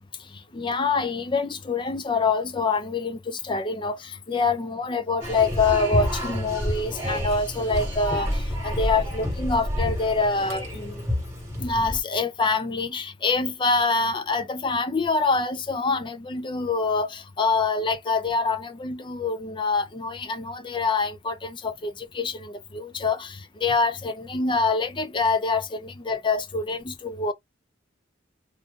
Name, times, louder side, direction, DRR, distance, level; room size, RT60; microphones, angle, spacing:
voice 1, 0.5-11.0 11.6-27.3, left 4 dB, 25° left, 0.4 m, -25 dB
sound 1, 5.2-12.0, left 1 dB, 15° right, 1.3 m, -29 dB
2.5 x 2.4 x 3.5 m
head